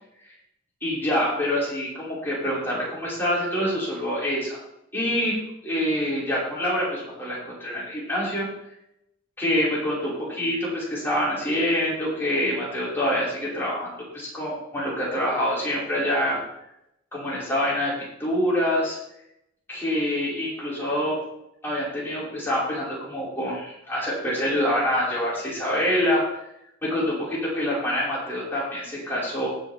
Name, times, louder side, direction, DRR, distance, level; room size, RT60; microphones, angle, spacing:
voice 1, 0.8-4.6 4.9-5.4 5.6-8.5 9.4-13.9 14.1-16.4 17.1-17.9 18.2-19.0 19.7-21.2 21.6-26.3 26.8-29.5, equal, 10° left, -8 dB, 5.7 m, -26 dB
19.5 x 7.5 x 3.7 m, 0.81 s
head